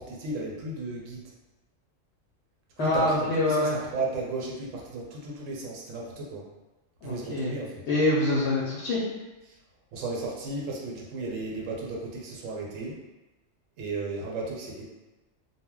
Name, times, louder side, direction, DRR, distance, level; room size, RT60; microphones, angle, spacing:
voice 1, 0.0-1.3 2.8-6.5 7.0-7.8 9.5-9.6 9.9-13.0 13.8-14.8, right 2 dB, 80° right, -2 dB, 1.0 m, -34 dB
voice 2, 2.8-3.7 7.0-7.5 7.9-9.0, left 1 dB, 65° left, -6 dB, 0.8 m, -25 dB
2.2 x 2.1 x 3.6 m, 1.1 s
omnidirectional pair, 1.3 m